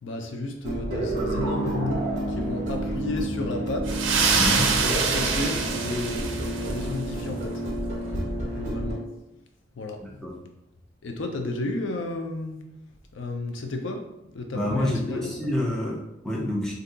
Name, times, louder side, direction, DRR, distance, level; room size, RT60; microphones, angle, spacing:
voice 1, 0.0-4.0 4.8-7.6 8.1-8.3 8.6-9.0 9.8-10.2 11.0-12.6 13.1-14.0 14.3-15.5, left 2 dB, 80° left, 4 dB, 0.4 m, -32 dB
sound 1, 0.6-9.0, right 1 dB, 40° right, 0.8 m, -29 dB
sound 2, 3.9-6.9, right 5 dB, 85° right, 0.4 m, -25 dB
voice 2, 4.4-4.7 10.0-10.4 14.5-16.7, left 1 dB, ahead, -4 dB, 0.5 m, -28 dB
2.6 x 2.2 x 3.8 m, 0.88 s
head